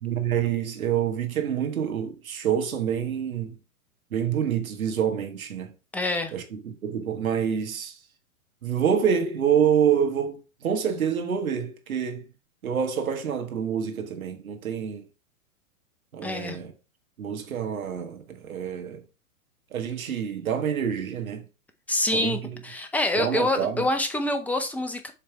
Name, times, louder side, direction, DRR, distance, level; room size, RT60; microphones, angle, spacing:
voice 1, 0.0-3.6 4.1-5.7 6.3-8.0 8.6-12.3 12.6-15.0 16.1-16.7 17.2-19.0 19.7-21.5 22.1-22.4 23.1-23.8, right 8 dB, 75° right, 1.6 m, -27 dB
voice 2, 5.9-6.3 16.2-16.6 21.9-25.1, left 2 dB, 5° left, 0.6 m, -26 dB
7.4 x 3.4 x 4.6 m
hypercardioid pair, 115°, 42 cm